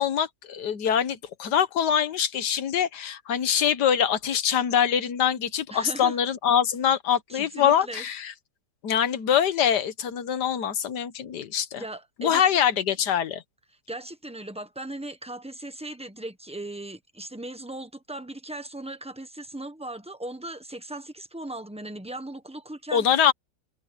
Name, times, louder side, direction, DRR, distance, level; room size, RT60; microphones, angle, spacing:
voice 1, 0.0-8.3 8.8-11.8 12.2-13.4 22.9-23.3, left 9 dB, 65° left, 1.7 m, -24 dB
voice 2, 5.7-6.2 7.3-8.0 11.8-12.4 13.9-23.0, right 1 dB, 5° right, 1.0 m, -38 dB
omnidirectional pair, 2.0 m